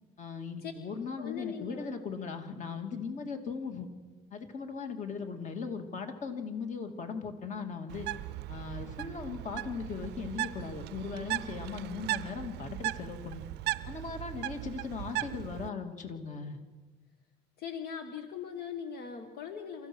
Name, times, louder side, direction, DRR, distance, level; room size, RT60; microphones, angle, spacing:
voice 1, 0.2-3.9 4.3-8.1 8.5-13.4 13.9-16.6, left 5 dB, 45° left, 5 dB, 2.6 m, -38 dB
voice 2, 1.2-2.0 17.6-19.9, left 7 dB, 65° left, 5 dB, 1.8 m, -40 dB
Bird, 7.9-15.7, right 17 dB, 80° right, 0.6 m, -38 dB
28.0 x 15.0 x 6.4 m, 1.3 s
cardioid pair, 110°, 17 cm